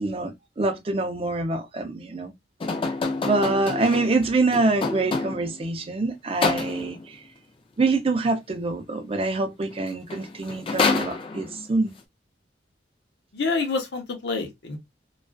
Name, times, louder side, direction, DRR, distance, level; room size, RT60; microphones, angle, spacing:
voice 1, 0.0-2.3 3.2-7.2 7.8-11.9, right 3 dB, 30° right, 0.4 m, -25 dB
sound 1, 2.6-5.6 6.4-7.1 9.7-9.8 10.1-11.7, left 3 dB, 30° left, 0.3 m, -27 dB
voice 2, 13.3-14.8, left 4 dB, 70° left, 0.7 m, -27 dB
2.4 x 2.3 x 2.2 m
head